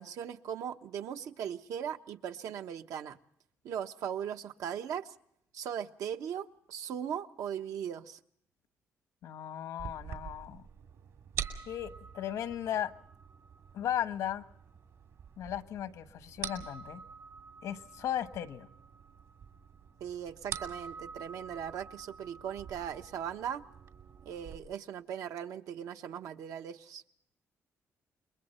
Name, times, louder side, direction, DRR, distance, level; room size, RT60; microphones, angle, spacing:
voice 1, 0.0-3.2 3.6-5.1 5.5-8.2 20.0-23.6 24.2-27.0, right 9 dB, 90° right, 7 dB, 1.1 m, -39 dB
voice 2, 9.2-10.6 11.7-12.9 13.7-14.4 15.4-17.0 17.6-18.7, left 10 dB, 85° left, 10 dB, 1.2 m, -36 dB
sound 1, 9.8-24.6, right 7 dB, 70° right, 2.5 m, -46 dB
29.0 x 22.5 x 4.4 m, 0.71 s
cardioid pair, 155°, 5 cm